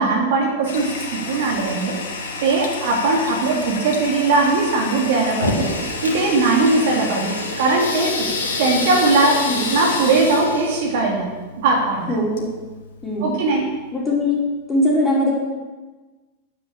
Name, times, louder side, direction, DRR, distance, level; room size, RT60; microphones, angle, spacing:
voice 1, 0.0-2.0 2.4-5.7 6.0-8.3 8.6-9.4 9.7-11.3 11.6-12.1 13.2-13.7, right 3 dB, 55° right, -1 dB, 2.9 m, -19 dB
Toilet flush, 0.7-13.3, left 4 dB, 60° left, 2.1 m, -30 dB
Fire, 5.3-11.0, left 1 dB, 85° left, 2.9 m, -30 dB
voice 2, 12.1-12.4 13.0-13.3 13.9-14.4 14.7-15.4, left 1 dB, 15° left, -4 dB, 4.4 m, -21 dB
10.5 x 9.5 x 7.3 m, 1.3 s
figure-of-eight pair, 90°, 0 cm